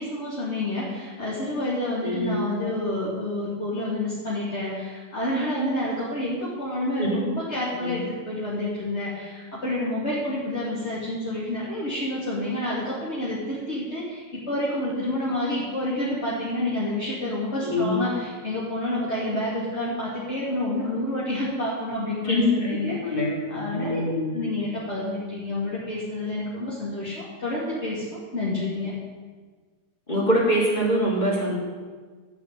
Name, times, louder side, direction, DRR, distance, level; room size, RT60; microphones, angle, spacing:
voice 1, 0.0-23.1 23.5-24.1 24.3-28.9, left 1 dB, 40° left, -9 dB, 3.1 m, -29 dB
voice 2, 2.0-2.4 7.0-7.2 7.7-8.0 17.6-18.0 22.2-24.3 30.1-31.5, equal, 25° left, -5 dB, 4.1 m, -24 dB
13.5 x 6.1 x 9.2 m, 1.5 s
omnidirectional pair, 1.7 m